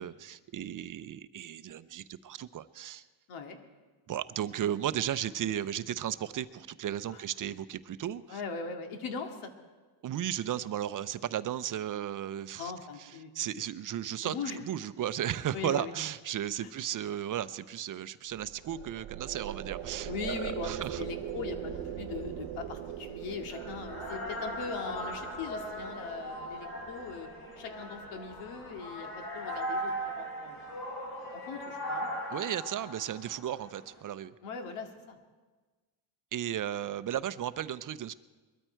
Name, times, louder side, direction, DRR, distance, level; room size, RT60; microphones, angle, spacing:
voice 1, 0.0-3.0 4.1-8.4 10.0-12.7 13.0-14.3 14.6-21.1 32.3-34.3 36.3-38.1, right 11 dB, 40° right, 14 dB, 0.6 m, -35 dB
voice 2, 3.3-3.6 7.1-7.2 8.3-9.5 12.6-13.3 14.2-14.6 15.5-15.9 16.6-16.7 20.1-27.3 27.6-29.1 29.3-30.6 31.5-32.1 34.4-35.2, left 5 dB, 80° left, 4 dB, 2.2 m, -40 dB
sound 1, 18.3-29.8, right 11 dB, 80° right, 1.1 m, -42 dB
sound 2, 19.8-34.0, equal, 45° left, 5.5 m, -40 dB
21.5 x 13.5 x 4.5 m, 1.3 s
cardioid pair, 120°, 49 cm